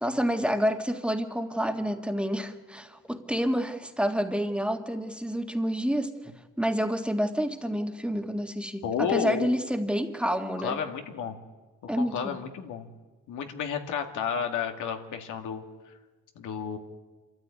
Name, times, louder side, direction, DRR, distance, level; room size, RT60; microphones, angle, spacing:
voice 1, 0.0-10.8 11.9-12.4, equal, 5° right, 6 dB, 1.8 m, -29 dB
voice 2, 8.8-9.5 10.6-11.3 11.8-12.9 13.3-15.6 16.4-16.8, left 7 dB, 80° left, 5 dB, 2.1 m, -31 dB
26.0 x 13.5 x 9.6 m, 1.3 s
cardioid pair, 90°, 30 cm